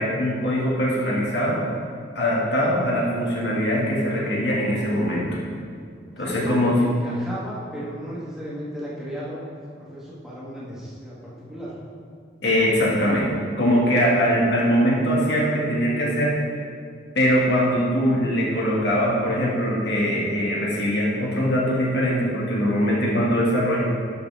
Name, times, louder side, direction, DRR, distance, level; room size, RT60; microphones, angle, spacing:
voice 1, 0.0-1.6 2.1-5.4 6.2-6.8 12.4-16.4 17.1-23.8, equal, 65° left, -4 dB, 1.7 m, -22 dB
voice 2, 6.1-9.4 9.7-11.7, right 1 dB, ahead, -8 dB, 1.7 m, -35 dB
11.5 x 5.9 x 3.4 m, 2.3 s
head